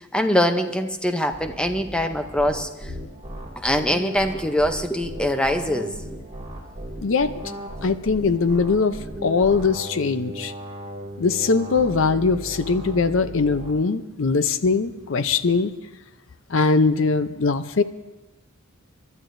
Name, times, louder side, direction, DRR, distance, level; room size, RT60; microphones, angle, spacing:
voice 1, 0.1-2.9 3.6-5.9, left 1 dB, 5° left, 7 dB, 0.7 m, -23 dB
sound 1, 1.3-13.7, equal, 25° right, 2.2 m, -37 dB
voice 2, 7.0-7.4 7.8-10.5 11.2-15.7 16.5-17.8, left 4 dB, 65° left, 12 dB, 0.6 m, -21 dB
29.0 x 12.0 x 2.6 m, 1.1 s
head